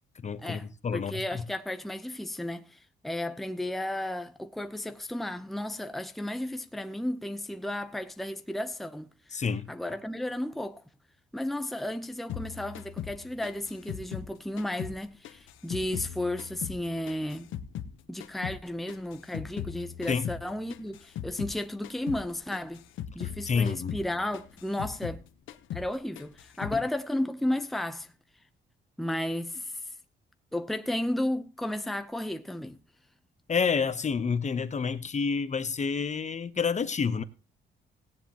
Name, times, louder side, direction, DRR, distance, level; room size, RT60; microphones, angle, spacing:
voice 1, 0.2-1.2 9.3-9.7 20.1-20.3 23.2-24.0 26.7-26.8 33.5-37.2, left 5 dB, 35° left, 1.0 m, -29 dB
voice 2, 0.9-9.4 9.7-10.8 11.3-17.5 18.1-22.9 23.1-25.2 25.7-28.1 29.0-29.8 30.5-32.8, left 1 dB, ahead, 0.8 m, -33 dB
sound 1, 12.3-15.0 15.2-17.9 18.2-21.6 21.8-22.3 22.5-25.2 25.5-25.9 26.2-26.8, left 9 dB, 80° left, 1.0 m, -39 dB
17.5 x 10.0 x 3.0 m
cardioid pair, 90°, 20 cm